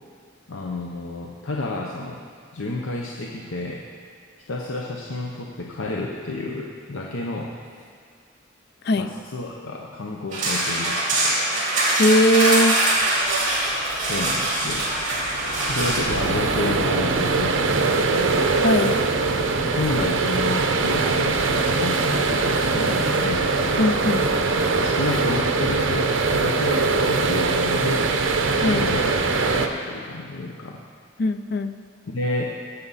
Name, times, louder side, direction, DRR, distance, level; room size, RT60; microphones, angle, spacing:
voice 1, 0.5-2.2 2.5-3.8 4.5-7.8 9.0-11.4 14.1-14.9 15.7-18.4 19.6-23.5 24.8-28.1 28.6-30.8 32.1-32.6, left 2 dB, 75° left, -1 dB, 0.8 m, -30 dB
Trolley passed-by, 10.3-16.0, right 1 dB, 35° right, 2.6 m, -23 dB
voice 2, 12.0-12.8 18.6-19.0 23.8-24.3 28.6-28.8 31.2-31.7, left 1 dB, 50° left, 11 dB, 0.4 m, -19 dB
sound 1, 13.0-29.7, right 3 dB, 70° right, 0.7 m, -23 dB
16.5 x 6.9 x 4.1 m, 2.1 s
head